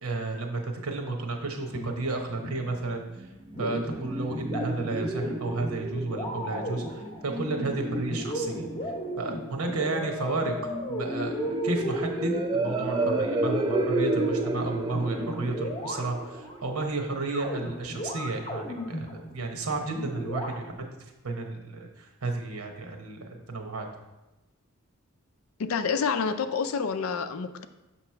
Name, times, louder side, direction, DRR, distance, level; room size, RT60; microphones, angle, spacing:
voice 1, 0.0-3.0 3.6-8.9 9.2-20.9 21.2-23.2 23.5-23.9, right 3 dB, 85° right, 3 dB, 1.0 m, -32 dB
sound 1, 1.7-3.1 3.4-16.6 17.2-20.5, equal, 25° left, 0.8 m, -35 dB
sound 2, 3.2-17.1, right 2 dB, 20° right, 0.4 m, -32 dB
voice 2, 25.6-27.7, left 5 dB, 75° left, 10 dB, 0.4 m, -28 dB
6.7 x 3.0 x 5.6 m, 1.1 s
head